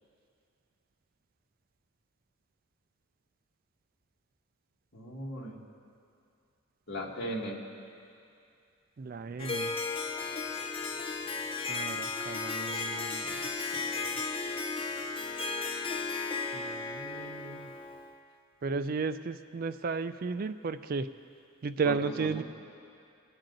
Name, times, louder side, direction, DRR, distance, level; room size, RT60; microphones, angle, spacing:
voice 1, 4.9-5.6 6.9-7.6 21.8-22.4, equal, 50° left, -3 dB, 1.7 m, -37 dB
voice 2, 9.0-9.7 11.7-13.4 13.7-13.9 16.5-17.7 18.6-21.1 21.6-22.4, right 4 dB, 45° right, 11 dB, 0.3 m, -34 dB
Harp, 9.4-18.1, left 4 dB, 25° left, 0.6 m, -35 dB
21.0 x 9.0 x 3.9 m, 2.5 s
head